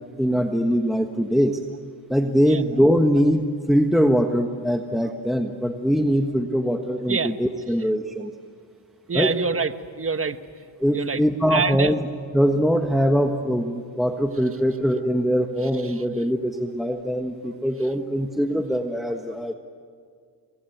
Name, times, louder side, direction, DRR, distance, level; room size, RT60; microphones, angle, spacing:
voice 1, 0.2-1.6 2.1-8.3 9.1-9.3 10.8-12.1 12.3-19.5, equal, ahead, 4 dB, 1.4 m, -22 dB
voice 2, 9.1-10.4 10.9-11.2 11.5-11.9, right 5 dB, 25° right, 10 dB, 1.3 m, -25 dB
27.0 x 22.0 x 9.3 m, 2.1 s
cardioid pair, 85°, 49 cm